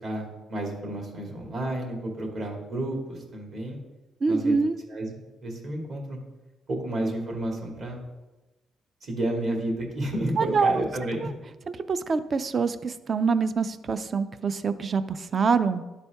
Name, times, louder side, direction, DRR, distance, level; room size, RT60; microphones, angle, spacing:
voice 1, 0.0-3.8 4.3-4.5 4.9-6.2 6.7-8.0 9.0-11.2, right 1 dB, 60° right, 0 dB, 2.1 m, -31 dB
voice 2, 4.2-4.8 10.4-10.8 11.2-11.3 11.8-15.8, right 5 dB, 45° right, 13 dB, 0.4 m, -25 dB
12.0 x 4.2 x 3.5 m, 1.1 s
cardioid pair, 90°, 0 cm